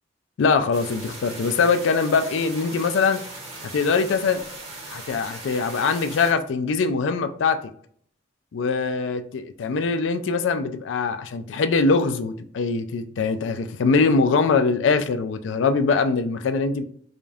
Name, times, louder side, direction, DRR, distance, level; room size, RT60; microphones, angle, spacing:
voice 1, 0.4-3.2 3.7-4.4 4.9-7.6 8.5-16.8, left 4 dB, 80° left, 0.4 m, -22 dB
sound 1, 0.7-6.3, right 2 dB, 35° right, 1.1 m, -39 dB
4.9 x 2.4 x 2.6 m
head